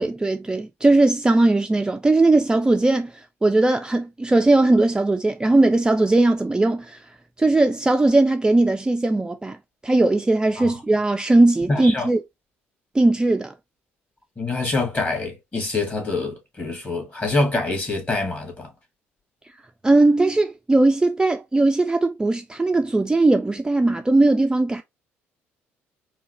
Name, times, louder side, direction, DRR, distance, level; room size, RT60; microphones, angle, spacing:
voice 1, 0.0-7.1 7.4-9.6 9.8-12.2 12.9-13.5 19.8-24.8, right 2 dB, 10° right, 0.4 m, -19 dB
voice 2, 11.7-12.1 14.4-18.7, left 3 dB, 25° left, 2.0 m, -25 dB
4.5 x 2.2 x 2.9 m
figure-of-eight pair, 50°, 7 cm